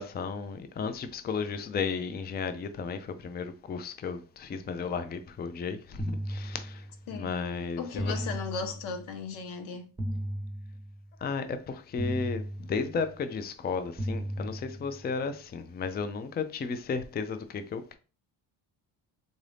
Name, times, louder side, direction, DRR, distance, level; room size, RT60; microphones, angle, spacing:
voice 1, 0.0-6.9 7.1-8.2 11.2-18.0, left 5 dB, 20° left, 0.4 m, -34 dB
sound 1, 6.0-7.2 8.0-9.2 10.0-11.2 12.0-13.2 14.0-15.2, equal, 10° right, 0.8 m, -36 dB
voice 2, 7.8-9.9, left 5 dB, 85° left, 0.8 m, -36 dB
3.9 x 2.6 x 3.3 m
cardioid pair, 75°, 46 cm